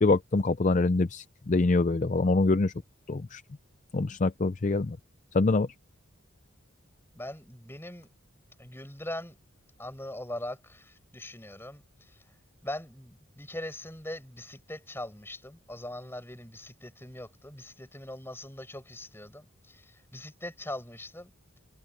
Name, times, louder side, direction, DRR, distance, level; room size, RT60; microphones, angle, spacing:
voice 1, 0.0-2.7 3.1-3.4 3.9-5.0 5.3-5.7, left 3 dB, 35° left, 0.4 m, -25 dB
voice 2, 7.2-8.1 8.6-9.3 9.8-12.2 12.6-21.3, left 1 dB, 10° left, 7.3 m, -41 dB
head